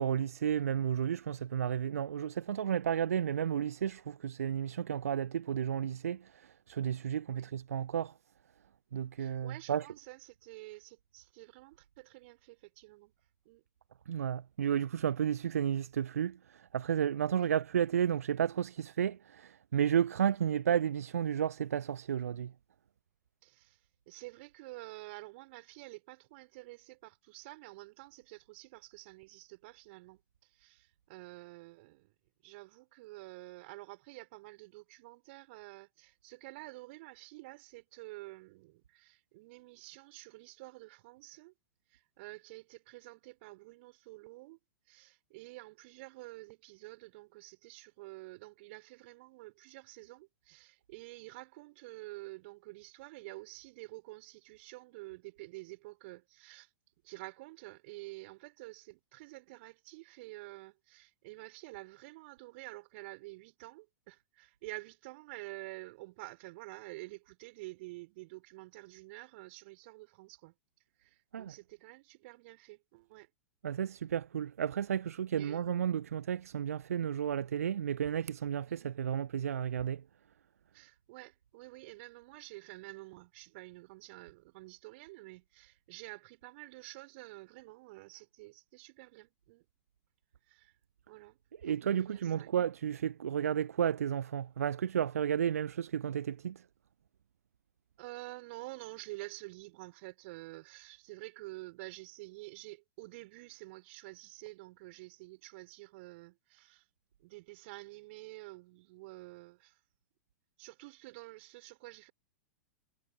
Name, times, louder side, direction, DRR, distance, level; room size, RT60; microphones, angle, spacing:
voice 1, 0.0-6.2 6.7-8.1 8.9-9.8 14.1-22.5 71.3-71.5 73.6-80.0 91.6-96.6, right 9 dB, 65° right, 0.5 m, -32 dB
voice 2, 9.2-13.1 13.5-13.6 17.2-17.5 23.4-23.8 24.1-32.1 32.4-41.5 41.9-44.6 44.9-56.7 57.0-70.5 71.0-73.3 75.4-75.7 78.6-78.8 80.7-89.6 90.5-90.7 91.1-91.4 91.6-92.5 98.0-106.8 107.2-109.8 110.6-112.1, right 22 dB, 45° right, 4.1 m, -49 dB
figure-of-eight pair, 100°, 9 cm